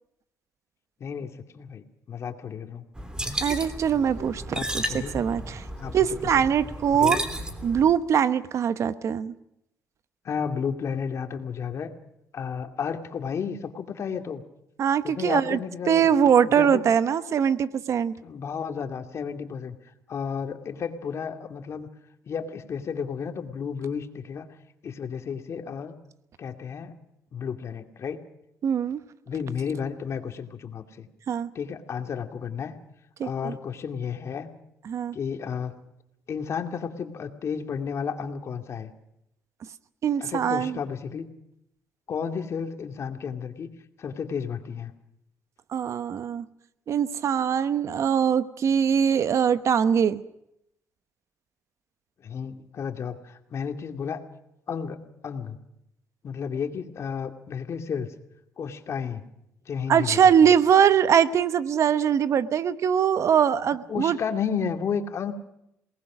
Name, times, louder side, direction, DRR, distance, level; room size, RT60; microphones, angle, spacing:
voice 1, 1.0-2.8 4.5-5.1 5.8-6.4 6.9-7.2 10.2-11.9 12.3-14.4 15.0-16.1 16.4-16.9 18.2-19.8 20.1-21.9 22.3-24.5 24.8-26.0 26.4-27.0 27.3-28.2 29.3-31.1 31.5-32.7 33.2-34.5 35.1-35.8 36.3-38.9 40.2-41.3 42.1-43.7 44.0-44.9 52.2-54.2 54.7-55.6 56.2-58.1 58.6-59.2 59.7-60.5 63.9-65.3, left 6 dB, 55° left, 6 dB, 2.4 m, -32 dB
sound 1, 2.9-7.9, right 1 dB, 15° right, 3.2 m, -33 dB
voice 2, 3.4-5.6 5.9-7.2 7.6-9.3 14.8-15.6 15.9-18.1 28.6-29.0 31.3-31.5 33.2-33.5 34.9-35.1 40.0-40.8 45.7-46.5 46.9-50.2 59.9-64.2, right 8 dB, 55° right, 14 dB, 1.1 m, -22 dB
27.5 x 19.0 x 6.2 m, 0.80 s
cardioid pair, 90°, 6 cm